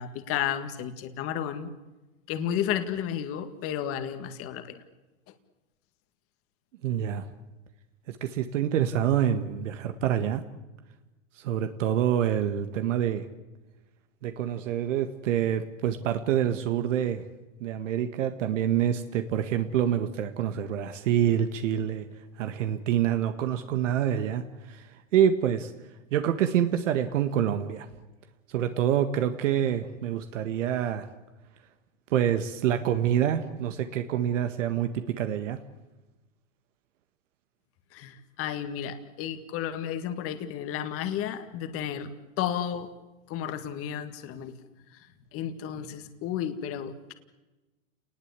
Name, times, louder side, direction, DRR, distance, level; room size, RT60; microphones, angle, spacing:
voice 1, 0.0-1.7 2.3-4.8 37.9-42.9 43.3-44.5 44.9-47.1, left 9 dB, 35° left, 9 dB, 2.0 m, -32 dB
voice 2, 6.8-7.2 8.1-10.4 11.4-13.3 14.2-17.2 17.6-22.1 22.4-25.7 26.1-27.9 28.5-31.1 32.1-35.6, right 10 dB, 70° right, 8 dB, 1.8 m, -26 dB
29.5 x 20.0 x 8.4 m, 1.1 s
hypercardioid pair, 130°, 39 cm